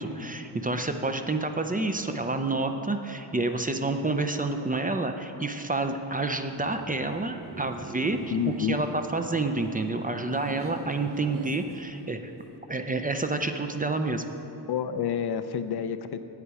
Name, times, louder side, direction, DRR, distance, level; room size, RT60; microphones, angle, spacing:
voice 1, 0.0-12.3 12.7-14.2, right 2 dB, 20° right, 6 dB, 0.5 m, -29 dB
Laughter, 6.3-12.6, right 2 dB, 50° right, 0.9 m, -44 dB
voice 2, 8.3-8.8 14.7-16.2, left 8 dB, 65° left, 10 dB, 0.5 m, -29 dB
8.7 x 8.2 x 4.8 m, 2.9 s
cardioid pair, 80°, 43 cm